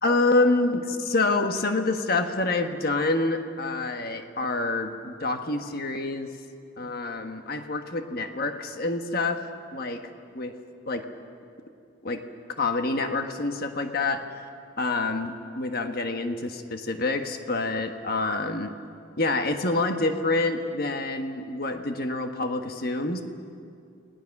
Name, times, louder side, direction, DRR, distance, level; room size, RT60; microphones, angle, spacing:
voice 1, 0.0-6.3 6.8-9.4 9.7-10.0 10.3-10.5 10.9-11.1 12.0-12.2 12.6-14.5 14.8-18.7 19.2-23.2, left 2 dB, 50° left, 6 dB, 1.4 m, -27 dB
29.5 x 19.5 x 6.0 m, 2.5 s
head